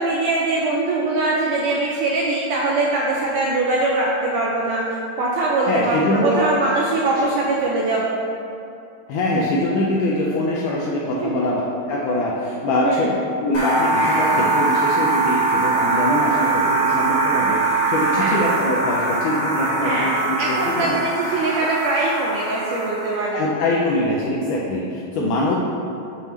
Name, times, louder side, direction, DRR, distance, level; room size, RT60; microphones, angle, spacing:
voice 1, 0.0-4.9 5.2-8.2 11.2-11.3 12.8-13.2 18.1-18.4 19.8-23.4, right 2 dB, 85° right, -4 dB, 1.8 m, -22 dB
voice 2, 5.7-6.4 9.1-11.6 11.9-13.1 13.4-21.0 23.3-25.6, left 1 dB, 85° left, -4 dB, 1.8 m, -23 dB
sound 1, 13.5-23.3, right 3 dB, 65° left, 1.2 m, -22 dB
6.9 x 5.7 x 3.1 m, 2.7 s
omnidirectional pair, 4.2 m